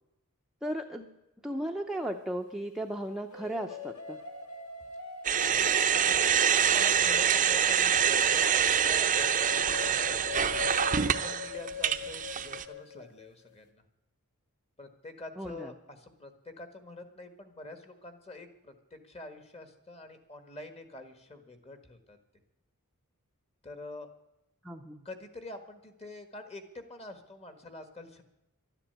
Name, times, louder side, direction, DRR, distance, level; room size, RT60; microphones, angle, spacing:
voice 1, 0.6-1.1 1.4-4.2 15.4-15.7 24.6-25.0, right 1 dB, ahead, 2 dB, 0.7 m, -35 dB
sound 1, 1.9-2.6 3.3-13.3, left 5 dB, 75° left, 1.7 m, -43 dB
sound 2, 5.2-12.6, right 8 dB, 35° right, 0.6 m, -25 dB
voice 2, 6.0-13.8 14.8-22.2 23.6-24.1 25.0-28.2, left 2 dB, 30° left, 8 dB, 1.6 m, -46 dB
12.5 x 10.0 x 8.1 m, 0.92 s
head